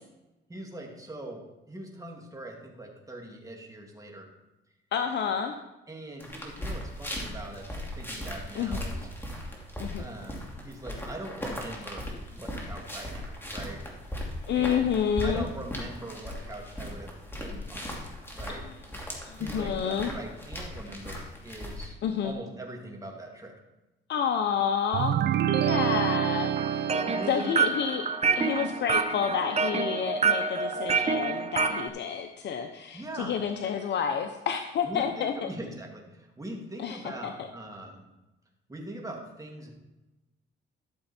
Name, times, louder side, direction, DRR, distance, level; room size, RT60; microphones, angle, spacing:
voice 1, 0.5-4.3 5.9-7.6 7.9-9.0 10.0-13.8 14.5-14.9 15.2-18.0 18.3-18.6 19.4-22.0 22.2-23.5 27.1-27.6 32.9-33.4 34.8-38.0 38.7-39.7, right 1 dB, 15° right, 1 dB, 2.5 m, -41 dB
voice 2, 4.9-5.5 8.5-8.8 9.8-10.1 14.5-15.4 18.6-18.7 19.2-20.1 22.0-22.3 24.1-25.2 25.5-26.9 27.3-28.1 28.3-35.5 36.8-37.5, left 7 dB, 60° left, 6 dB, 0.8 m, -29 dB
sound 1, 6.2-21.9, left 1 dB, 10° left, 2.8 m, -38 dB
sound 2, 24.9-27.7, right 10 dB, 60° right, 0.6 m, -27 dB
sound 3, 26.6-31.9, right 5 dB, 30° right, 0.8 m, -27 dB
13.0 x 6.9 x 4.4 m, 1.0 s
cardioid pair, 90°, 20 cm